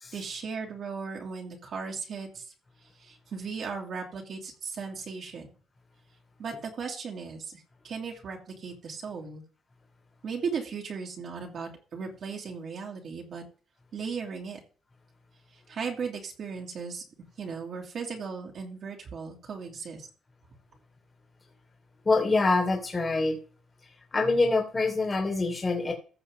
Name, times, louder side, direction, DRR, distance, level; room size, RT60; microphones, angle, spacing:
voice 1, 0.1-2.5 3.0-5.5 6.4-9.4 10.2-13.4 13.9-14.6 15.5-17.0 17.4-20.1, right 5 dB, 55° right, -1 dB, 2.5 m, -37 dB
voice 2, 22.1-23.4 24.1-25.9, left 3 dB, 25° left, 1 dB, 2.6 m, -25 dB
15.0 x 6.5 x 3.8 m, 0.39 s
cardioid pair, 110°, 0 cm